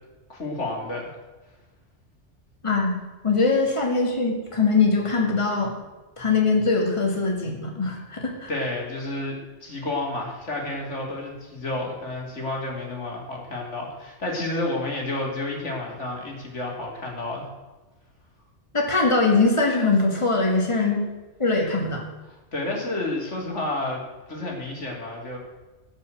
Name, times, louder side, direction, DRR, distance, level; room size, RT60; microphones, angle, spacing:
voice 1, 0.3-1.1 8.5-17.5 20.7-20.9 22.3-24.0 24.3-25.4, left 2 dB, 90° left, -1 dB, 3.3 m, -30 dB
voice 2, 2.6-3.0 3.2-5.7 6.2-8.5 18.7-21.0 21.4-22.0, left 3 dB, 25° left, 0 dB, 2.2 m, -22 dB
17.0 x 5.7 x 7.8 m, 1.2 s
omnidirectional pair, 1.2 m